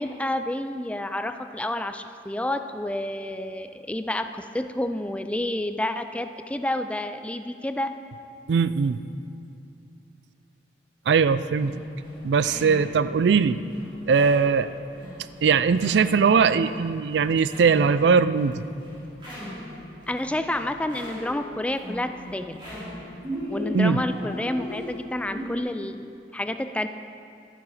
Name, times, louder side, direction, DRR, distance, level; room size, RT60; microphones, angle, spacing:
voice 1, 0.0-7.9 20.1-22.6 23.5-26.9, left 1 dB, 5° left, 9 dB, 0.3 m, -29 dB
voice 2, 8.5-9.0 11.1-11.8 12.2-13.6 14.1-14.7 15.4-18.6 23.7-24.0, right 5 dB, 75° right, 14 dB, 0.4 m, -20 dB
sound 1, 11.6-25.6, left 1 dB, 30° right, 3.5 m, -39 dB
12.5 x 11.0 x 4.9 m, 2.5 s
head